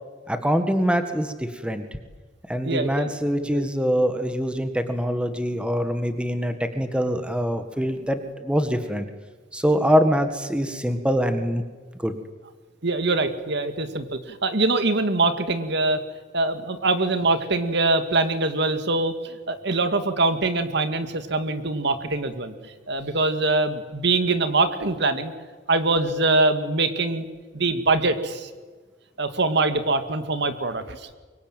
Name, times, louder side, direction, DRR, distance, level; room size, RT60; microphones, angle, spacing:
voice 1, 0.3-1.8 2.5-9.1 9.5-11.6 12.0-12.1, equal, 5° right, 8 dB, 1.7 m, -24 dB
voice 2, 2.6-3.1 3.4-3.7 12.8-16.0 16.3-22.5 22.9-25.3 25.7-27.3 27.5-28.5 29.2-31.0, right 2 dB, 60° right, 9 dB, 2.1 m, -23 dB
24.5 x 23.0 x 9.2 m, 1.4 s
head